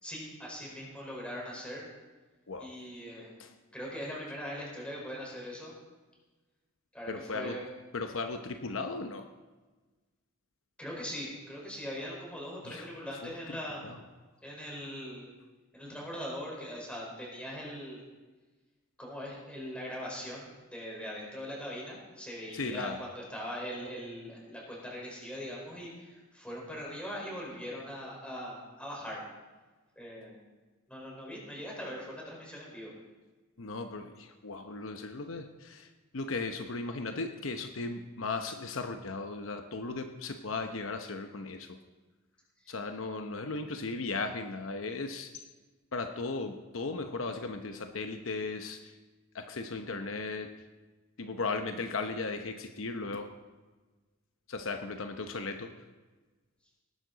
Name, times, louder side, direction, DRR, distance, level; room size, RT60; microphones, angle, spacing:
voice 1, 0.0-1.8 2.6-3.3 3.7-5.7 6.9-7.7 10.8-13.8 14.4-15.3 15.7-18.0 19.0-29.2 29.9-30.4 30.9-32.9 42.6-42.7, equal, 5° left, -3 dB, 4.5 m, -41 dB
voice 2, 2.5-2.8 3.4-3.5 7.1-7.6 7.9-9.3 12.6-12.9 13.2-13.6 13.8-14.0 22.5-23.0 33.6-41.8 42.7-45.5 45.9-48.9 49.3-50.5 51.2-53.3 54.5-55.7, left 3 dB, 70° left, 6 dB, 0.8 m, -36 dB
19.0 x 11.5 x 4.0 m, 1.3 s
head